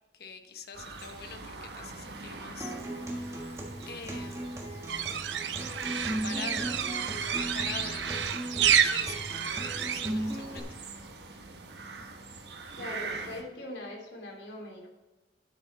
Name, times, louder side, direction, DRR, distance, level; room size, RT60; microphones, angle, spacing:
voice 1, 0.1-3.5 3.9-5.0 6.2-6.8 7.1-10.7, left 5 dB, 60° left, 6 dB, 1.1 m, -44 dB
sound 1, 0.7-13.4, right 4 dB, 70° right, 1.4 m, -43 dB
Acoustic guitar, 2.6-10.6, right 1 dB, 15° right, 1.5 m, -37 dB
sound 2, 4.9-10.1, right 8 dB, 85° right, 0.7 m, -29 dB
voice 2, 12.8-14.9, left 1 dB, 80° left, 0 dB, 2.9 m, -41 dB
9.8 x 8.5 x 4.2 m, 1.1 s
head